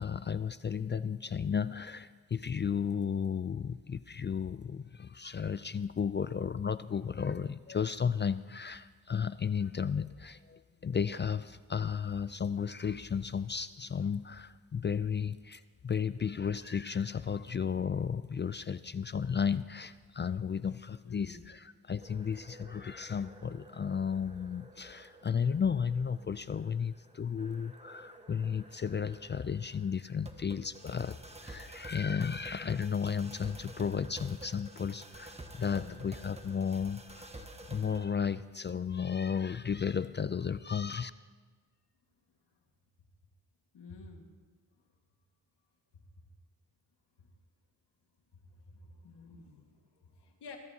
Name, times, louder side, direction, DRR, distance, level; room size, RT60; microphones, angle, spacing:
voice 1, 0.0-31.2 31.4-41.1, left 7 dB, 30° left, 15 dB, 0.4 m, -34 dB
voice 2, 21.0-21.4 35.7-36.0 43.7-44.3 47.2-47.3 48.3-50.6, left 4 dB, 90° left, 3 dB, 1.8 m, -51 dB
sound 1, 22.0-38.0, right 1 dB, 15° right, 1.3 m, -51 dB
22.5 x 14.0 x 2.8 m, 1.4 s
cardioid pair, 75°, 39 cm